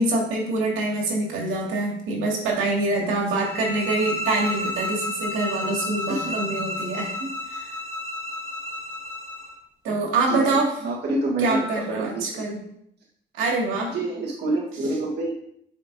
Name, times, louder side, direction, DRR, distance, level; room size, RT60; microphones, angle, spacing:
voice 1, 0.0-7.7 9.8-10.7 11.4-12.6 13.4-13.9, right 2 dB, 90° right, -2 dB, 2.3 m, -25 dB
sound 1, 3.4-9.6, left 1 dB, 15° left, 1.4 m, -31 dB
voice 2, 6.1-6.5 6.9-7.0 10.3-12.3 13.9-15.3, right 2 dB, 60° right, -4 dB, 1.6 m, -28 dB
10.5 x 5.1 x 2.8 m, 0.70 s
cardioid pair, 90°, 20 cm